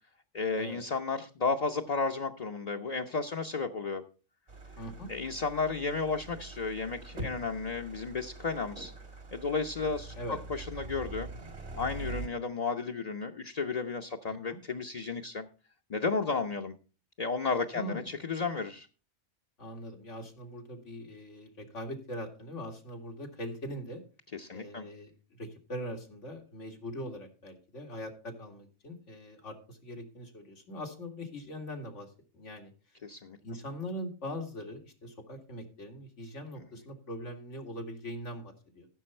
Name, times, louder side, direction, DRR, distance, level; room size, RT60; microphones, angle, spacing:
voice 1, 0.3-4.0 5.1-8.9 9.3-10.1 10.5-11.3 11.7-15.5 15.9-16.8 17.2-18.9 24.3-24.9 33.0-33.4, left 4 dB, 40° left, 2 dB, 0.8 m, -33 dB
sound 1, 4.5-12.3, right 2 dB, 65° right, 2.2 m, -43 dB
voice 2, 4.8-5.1 10.2-10.4 14.3-14.6 17.7-18.1 19.6-24.0 24.5-32.7 33.4-38.9, equal, 90° left, 3 dB, 2.4 m, -41 dB
15.0 x 6.9 x 4.4 m, 0.36 s
omnidirectional pair, 1.2 m